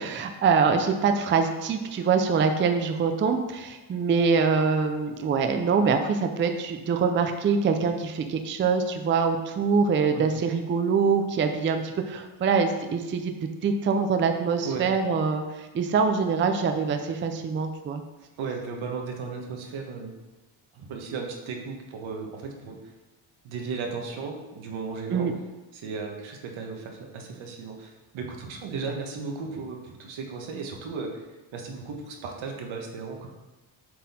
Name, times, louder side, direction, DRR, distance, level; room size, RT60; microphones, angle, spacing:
voice 1, 0.0-18.0 25.1-25.3, right 5 dB, 25° right, 6 dB, 0.4 m, -24 dB
voice 2, 18.4-20.1 20.7-22.8 23.4-25.3 25.7-31.2 31.5-33.3, right 4 dB, 80° right, 2 dB, 1.3 m, -35 dB
7.4 x 4.2 x 4.2 m, 1.1 s
cardioid pair, 160°, 46 cm